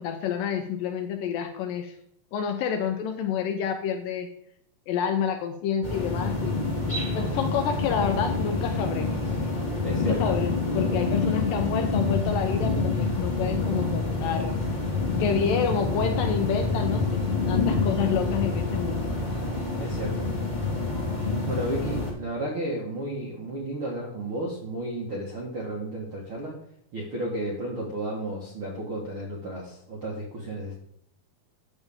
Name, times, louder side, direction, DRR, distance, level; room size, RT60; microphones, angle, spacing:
voice 1, 0.0-2.0 2.3-4.3 4.9-6.6 7.1-9.2 10.0-14.5 15.2-17.2 17.5-19.2, left 7 dB, 80° left, 6 dB, 2.0 m, -28 dB
sound 1, 5.8-22.1, left 3 dB, 25° left, 0.9 m, -27 dB
voice 2, 9.8-10.3 19.8-20.3 21.4-26.6 26.9-30.7, right 1 dB, 70° right, -2 dB, 1.2 m, -33 dB
9.2 x 7.0 x 3.6 m, 0.72 s
omnidirectional pair, 4.7 m